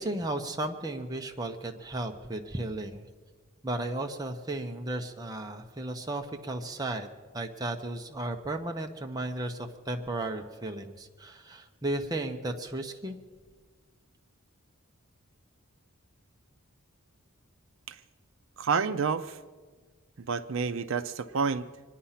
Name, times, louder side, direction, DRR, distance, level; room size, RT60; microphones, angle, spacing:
voice 1, 0.0-3.1 3.6-7.1 7.3-13.2, right 2 dB, 20° right, 3 dB, 0.7 m, -34 dB
voice 2, 18.6-19.4 20.3-21.6, right 5 dB, 60° right, 12 dB, 0.5 m, -29 dB
25.0 x 10.0 x 5.7 m, 1.5 s
head